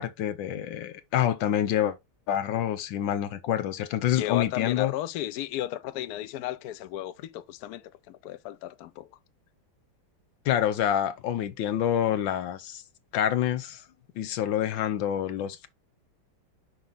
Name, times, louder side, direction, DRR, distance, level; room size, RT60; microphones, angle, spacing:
voice 1, 0.0-2.0 2.3-4.9 10.4-12.8 13.1-13.8 14.2-15.7, left 10 dB, 70° left, 1.4 m, -27 dB
voice 2, 4.1-9.1, left 14 dB, 85° left, 0.8 m, -34 dB
5.6 x 4.5 x 3.9 m
omnidirectional pair, 2.3 m